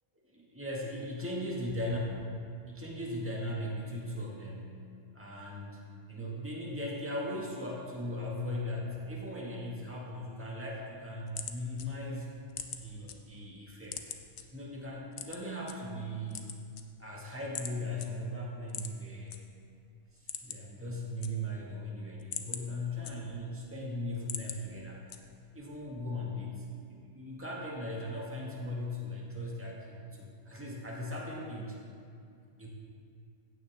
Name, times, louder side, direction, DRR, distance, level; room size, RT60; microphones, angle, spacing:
voice 1, 0.3-2.0 2.7-4.8 5.1-5.8 6.1-12.3 12.8-14.1 14.5-16.5 17.0-19.4 20.1-25.1 25.5-31.8 32.6-32.7, left 1 dB, 10° right, -4 dB, 1.8 m, -38 dB
sound 1, 11.0-13.2 13.5-14.4 15.1-15.7 16.2-17.2 17.5-17.7 18.0-18.1 18.7-19.4 19.7-19.8 20.1-20.7 21.0-21.7 22.1-23.6 24.0-24.6 25.1-25.5, left 8 dB, 65° left, 1.0 m, -41 dB
15.5 x 9.2 x 3.6 m, 2.4 s
omnidirectional pair, 1.3 m